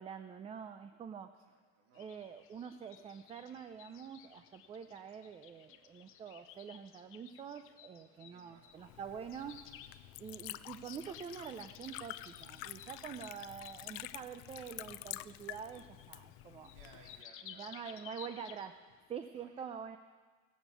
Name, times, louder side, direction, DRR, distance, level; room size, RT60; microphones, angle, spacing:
voice 1, 0.0-1.3 2.0-9.6 10.2-16.7 17.4-18.7 19.1-20.0, right 7 dB, 20° right, 9 dB, 0.4 m, -46 dB
voice 2, 1.3-2.1 8.1-9.2 16.6-18.5 19.3-19.7, right 4 dB, 90° right, 0 dB, 2.6 m, -63 dB
sound 1, 1.9-19.1, left 9 dB, 45° left, 0.8 m, -57 dB
Liquid, 8.7-17.2, left 17 dB, 70° left, 0.5 m, -49 dB
17.5 x 7.2 x 8.2 m, 1.4 s
cardioid pair, 145°, 29 cm